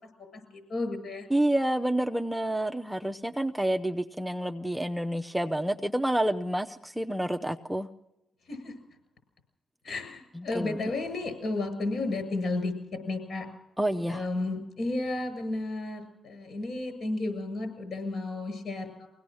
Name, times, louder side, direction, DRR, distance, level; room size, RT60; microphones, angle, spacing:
voice 1, 0.3-1.3 8.5-8.7 9.8-12.7 13.1-13.5 14.1-19.1, left 2 dB, 60° left, 7 dB, 7.2 m, -32 dB
voice 2, 1.3-7.9 10.5-10.7 13.8-14.2, right 1 dB, 5° right, 6 dB, 0.7 m, -28 dB
23.0 x 17.5 x 6.4 m, 0.93 s
cardioid pair, 90°, 0 cm